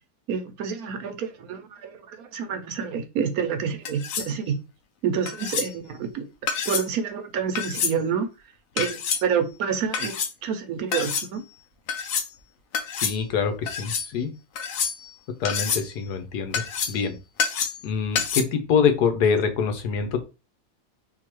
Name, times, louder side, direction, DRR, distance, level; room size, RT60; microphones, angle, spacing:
voice 1, 0.3-4.6 5.0-6.2 6.7-8.3 8.8-10.1 10.4-11.4, right 7 dB, 70° right, 1.1 m, -28 dB
sound 1, 3.9-4.3 5.3-5.7 6.5-6.9 7.6-8.0 8.8-9.2 9.9-10.3 10.9-11.3 11.9-12.3 12.7-13.2 13.7-14.1 14.6-15.1 15.5-15.9 16.5-17.0 17.4-17.9 18.2-18.4, left 6 dB, 65° left, 1.0 m, -27 dB
voice 2, 13.0-14.3 15.4-17.1 17.8-20.2, left 6 dB, 85° left, 1.3 m, -25 dB
3.7 x 2.7 x 3.0 m
omnidirectional pair, 1.7 m